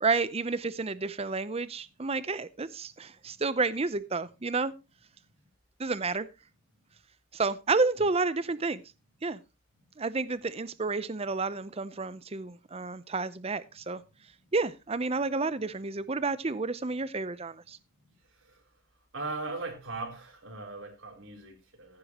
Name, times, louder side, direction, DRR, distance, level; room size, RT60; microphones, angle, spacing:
voice 1, 0.0-4.7 5.8-6.3 7.3-8.8 9.2-9.4 10.0-14.0 14.5-17.8, right 3 dB, 30° right, 0.6 m, -30 dB
voice 2, 19.1-22.0, right 3 dB, 75° right, 3.6 m, -38 dB
15.0 x 9.5 x 3.0 m
head